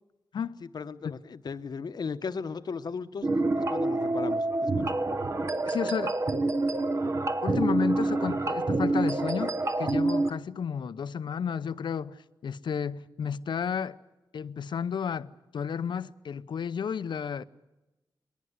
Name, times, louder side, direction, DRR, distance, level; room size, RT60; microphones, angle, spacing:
voice 1, 0.6-3.3 3.5-5.0, left 5 dB, 60° left, 1.0 m, -36 dB
sound 1, 3.2-10.3, right 2 dB, 40° right, 1.1 m, -27 dB
voice 2, 5.6-6.2 7.4-14.0 14.3-17.4, left 7 dB, 80° left, 0.7 m, -32 dB
22.0 x 19.0 x 9.6 m
wide cardioid pair, 95°, 8 cm